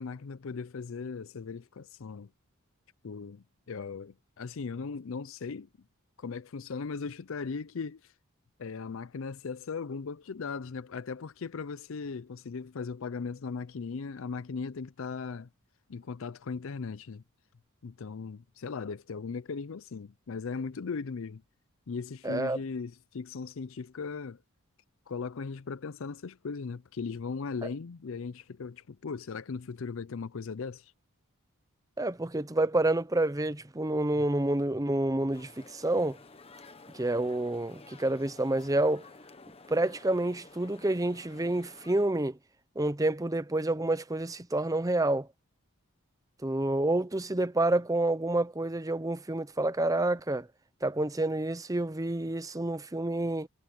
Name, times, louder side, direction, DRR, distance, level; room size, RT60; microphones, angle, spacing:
voice 1, 0.0-2.3 3.0-5.7 6.2-8.0 8.6-15.5 15.9-17.2 17.8-21.4 21.9-24.4 25.1-30.9, left 5 dB, 65° left, 0.5 m, -38 dB
voice 2, 22.2-22.6 32.0-36.2 36.9-39.0 39.7-42.4 42.8-45.3 46.4-50.5 50.8-53.5, right 2 dB, 15° right, 0.7 m, -28 dB
sound 1, 35.3-42.0, left 3 dB, 25° left, 1.1 m, -52 dB
head